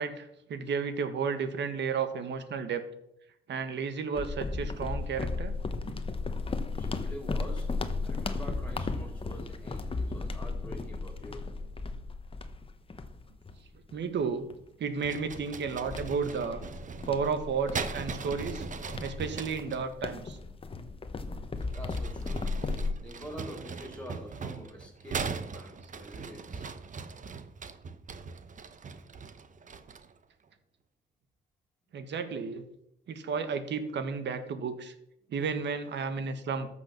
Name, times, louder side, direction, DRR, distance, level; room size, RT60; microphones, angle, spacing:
voice 1, 0.0-2.8 3.5-5.5 13.9-14.5 14.8-16.6 17.1-18.6 19.0-20.4 31.9-32.6 33.1-34.9 35.3-36.7, right 5 dB, 65° right, 9 dB, 1.6 m, -32 dB
sound 1, 4.1-14.0 14.5-14.7 15.2-22.9, left 3 dB, 25° left, 1.0 m, -35 dB
voice 2, 6.7-7.7 8.0-11.5 21.7-22.5 23.0-25.2 25.5-26.7, equal, 5° left, 2 dB, 4.4 m, -46 dB
sound 2, 15.0-19.8 21.6-30.2, right 5 dB, 40° right, 1.0 m, -40 dB
13.5 x 6.5 x 6.0 m, 0.80 s
cardioid pair, 90°, 20 cm